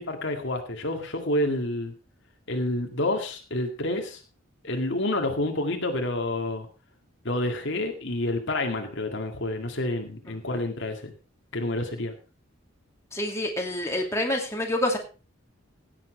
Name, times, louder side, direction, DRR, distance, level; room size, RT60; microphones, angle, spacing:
voice 1, 0.0-1.9 2.5-4.2 4.6-6.7 7.2-11.1 11.5-12.1, left 1 dB, 60° left, 4 dB, 2.1 m, -28 dB
voice 2, 13.1-15.0, left 1 dB, 15° left, 1 dB, 2.4 m, -27 dB
17.0 x 7.6 x 4.5 m, 0.34 s
head